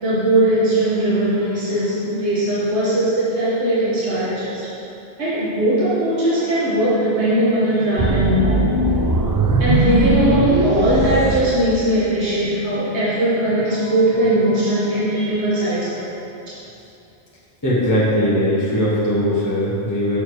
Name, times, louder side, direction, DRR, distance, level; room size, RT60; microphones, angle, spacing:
voice 1, 0.0-4.6 5.2-8.7 9.6-16.2 16.5-16.6, right 1 dB, 70° right, -10 dB, 1.9 m, -19 dB
sound 1, 8.0-12.2, right 2 dB, 30° right, 0.4 m, -19 dB
voice 2, 17.6-20.2, equal, 15° left, -8 dB, 1.2 m, -19 dB
7.2 x 6.8 x 4.7 m, 2.7 s
omnidirectional pair, 1.2 m